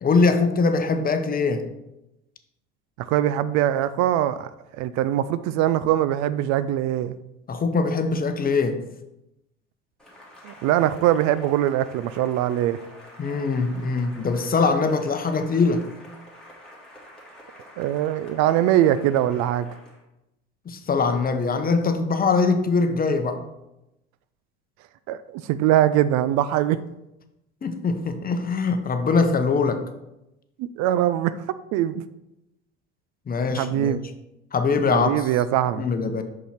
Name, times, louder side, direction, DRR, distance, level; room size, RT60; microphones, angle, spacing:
voice 1, 0.0-1.6 7.5-8.8 13.2-15.9 20.7-23.4 27.6-29.8 33.3-34.0 34.5-35.1 35.8-36.2, left 4 dB, 25° left, 8 dB, 0.8 m, -22 dB
voice 2, 3.0-7.2 10.4-12.8 17.8-19.7 25.1-26.8 30.6-31.3 31.7-32.0 33.5-34.1 34.9-35.8, right 12 dB, 55° right, 14 dB, 0.4 m, -22 dB
Cheering / Applause, 10.0-20.0, equal, ahead, 2.1 m, -47 dB
6.0 x 5.5 x 4.3 m, 0.91 s
hypercardioid pair, 75°, 34 cm